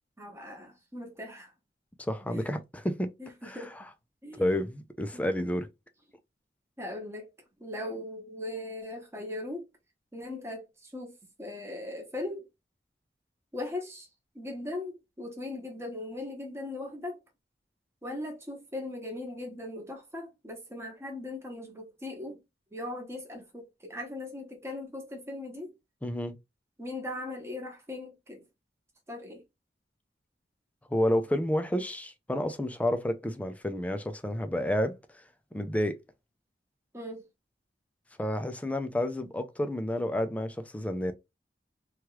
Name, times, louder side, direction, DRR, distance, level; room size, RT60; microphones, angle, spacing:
voice 1, 0.2-1.5 2.3-2.4 3.2-3.7 4.2-4.4 5.1-5.3 6.8-7.3 7.6-9.7 10.1-11.1 11.4-12.5 13.5-14.1 14.3-17.2 18.0-22.4 22.7-25.7 26.8-28.4 29.1-29.4 36.9-37.2, left 2 dB, 15° right, 0.9 m, -39 dB
voice 2, 2.1-3.1 3.4-3.8 4.4-5.7 26.0-26.4 30.9-35.0 35.5-36.0 38.2-41.1, left 1 dB, 10° left, 0.4 m, -30 dB
3.0 x 2.3 x 3.0 m
head